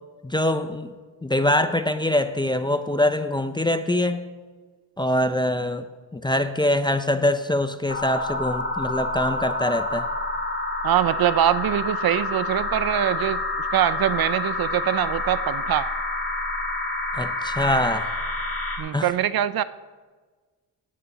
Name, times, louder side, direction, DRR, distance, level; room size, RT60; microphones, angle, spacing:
voice 1, 0.2-0.9 1.2-4.2 5.0-5.9 6.1-10.1 17.1-18.1 18.9-19.1, left 1 dB, 10° left, 10 dB, 0.4 m, -23 dB
sound 1, 7.9-18.8, left 2 dB, 30° left, 2.3 m, -28 dB
voice 2, 10.8-13.4 13.7-15.9 18.8-19.6, right 11 dB, 60° right, 16 dB, 0.5 m, -23 dB
17.0 x 9.4 x 4.0 m, 1.4 s
wide cardioid pair, 130°, 41 cm